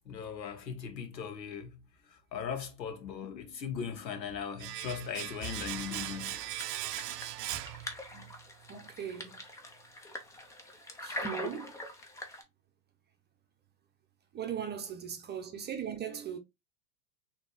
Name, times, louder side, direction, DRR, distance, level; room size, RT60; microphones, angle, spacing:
voice 1, 0.1-1.8 2.1-6.5, left 7 dB, 90° left, 1.2 m, -39 dB
Domestic sounds home sounds, 4.6-8.4 8.7-8.8, right 14 dB, 70° right, 0.6 m, -39 dB
sound 1, 5.4-12.4, left 1 dB, 5° left, 0.3 m, -43 dB
voice 2, 8.7-9.3 11.0-11.7 14.3-16.4, right 8 dB, 20° right, 0.7 m, -39 dB
4.1 x 2.9 x 3.2 m
hypercardioid pair, 105°, 50 cm